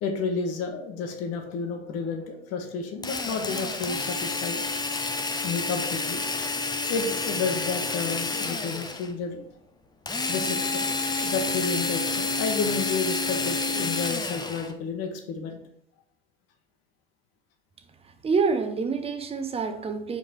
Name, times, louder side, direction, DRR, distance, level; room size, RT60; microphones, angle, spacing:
voice 1, 0.0-4.6 5.4-6.2 6.9-9.4 10.3-10.9 11.2-15.6, left 4 dB, 50° left, 4 dB, 1.6 m, -31 dB
Drill, 3.0-9.1 10.1-14.7, left 3 dB, 10° left, 0.8 m, -29 dB
voice 2, 18.2-20.2, right 5 dB, 20° right, 7 dB, 0.9 m, -27 dB
7.4 x 4.9 x 4.5 m, 0.74 s
figure-of-eight pair, 70°, 33 cm